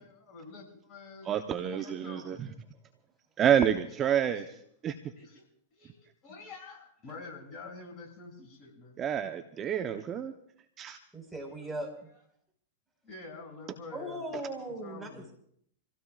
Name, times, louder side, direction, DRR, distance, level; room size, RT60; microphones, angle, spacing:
voice 1, 0.0-2.4 4.4-4.5 5.2-5.5 5.7-9.0 13.0-15.3, left 3 dB, 35° left, 7.3 m, -48 dB
voice 2, 1.2-2.5 3.4-4.5 4.8-4.9 9.0-10.3 10.8-11.0, right 9 dB, 30° right, 1.0 m, -28 dB
voice 3, 11.1-11.9 13.9-15.3, right 1 dB, 5° right, 5.2 m, -38 dB
28.0 x 16.0 x 2.5 m
hypercardioid pair, 110°, 0 cm